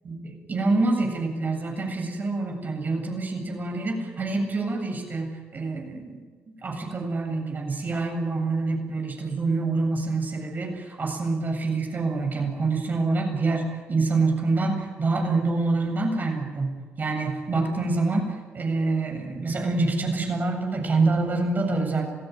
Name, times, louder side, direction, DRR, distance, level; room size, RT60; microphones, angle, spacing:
voice 1, 0.0-6.2 6.6-16.7 17.0-22.0, right 3 dB, 40° right, 3 dB, 7.9 m, -26 dB
27.0 x 16.5 x 9.5 m, 1.5 s
cardioid pair, 80°, 5 cm